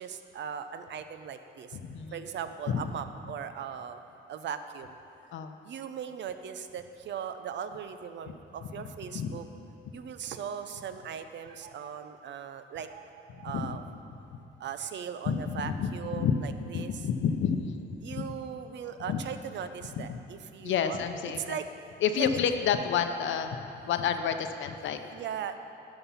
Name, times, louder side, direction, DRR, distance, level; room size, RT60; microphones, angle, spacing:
voice 1, 0.0-1.8 2.1-4.0 4.3-5.0 5.6-9.4 9.9-13.8 14.6-17.0 18.0-21.0 21.4-21.6 22.2-22.3 25.1-25.6, right 8 dB, 65° right, 10 dB, 0.6 m, -39 dB
voice 2, 1.8-2.2 2.7-2.8 5.3-5.6 8.3-8.4 8.8-9.4 13.4-13.8 15.3-16.4 16.7-18.2 19.1-19.2 20.1-20.2 20.6-21.6 22.0-23.6 23.8-25.0, left 7 dB, 70° left, 8 dB, 0.7 m, -30 dB
11.5 x 5.9 x 5.6 m, 2.9 s
cardioid pair, 90°, 20 cm